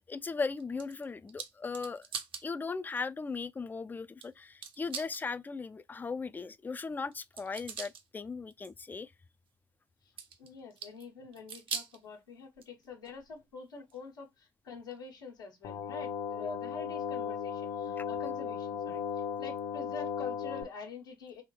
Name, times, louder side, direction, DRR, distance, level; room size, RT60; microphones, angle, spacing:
voice 1, 0.1-2.1 2.4-9.1 18.0-18.1, left 4 dB, 15° left, 0.3 m, -37 dB
sound 1, 0.6-2.4 3.0-3.1 4.2-4.3 4.6-5.2 7.1-8.0 8.5-8.7 10.2-11.1 11.3-12.0 12.6-13.4 13.9-14.0 14.9-15.0, right 6 dB, 50° right, 0.7 m, -42 dB
voice 2, 10.4-19.0 19.4-21.4, left 4 dB, 85° left, 1.2 m, -46 dB
sound 2, 15.6-20.6, left 7 dB, 55° left, 0.7 m, -36 dB
3.5 x 2.8 x 3.1 m
figure-of-eight pair, 50°, 11 cm